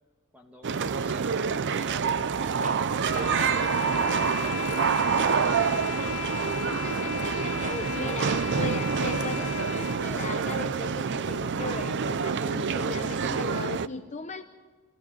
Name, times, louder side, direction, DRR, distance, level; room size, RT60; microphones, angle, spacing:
voice 1, 0.3-5.5, equal, 5° right, 2 dB, 2.4 m, -50 dB
sound 1, 0.6-13.9, right 6 dB, 55° right, 0.6 m, -27 dB
sound 2, 1.9-9.6, right 3 dB, 35° right, 1.1 m, -44 dB
sound 3, 3.0-10.1, left 6 dB, 80° left, 1.1 m, -36 dB
voice 2, 6.7-14.4, left 3 dB, 30° left, 6 dB, 0.8 m, -38 dB
26.0 x 14.5 x 8.8 m, 1.4 s
head